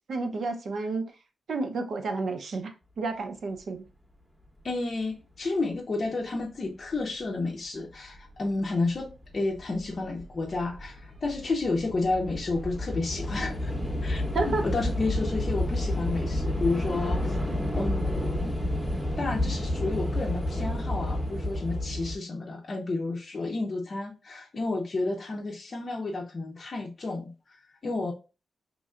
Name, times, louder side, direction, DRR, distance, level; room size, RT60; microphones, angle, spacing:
voice 1, 0.1-1.1 1.5-3.8 14.3-14.7, right 3 dB, 60° right, 0.7 m, -31 dB
voice 2, 4.6-13.7 14.0-17.4 17.7-18.5 19.2-28.1, left 3 dB, 35° left, 0.6 m, -31 dB
Train / Subway metro underground, 8.2-8.3 9.1-9.3 9.6-22.1, left 1 dB, ahead, 0.9 m, -30 dB
5.3 x 3.1 x 2.5 m
wide cardioid pair, 150°, 0 cm